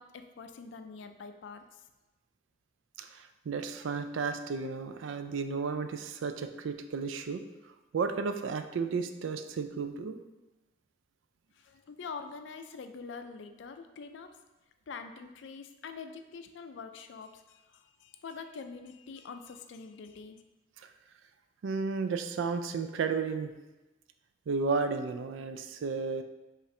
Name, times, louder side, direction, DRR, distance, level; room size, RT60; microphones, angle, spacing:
voice 1, 0.0-1.8 11.5-14.3 14.9-20.4, left 5 dB, 75° left, 8 dB, 0.4 m, -45 dB
voice 2, 3.0-7.4 7.9-10.2 21.6-23.5 24.5-26.2, right 5 dB, 90° right, 8 dB, 0.4 m, -33 dB
5.3 x 2.5 x 3.2 m, 1.1 s
head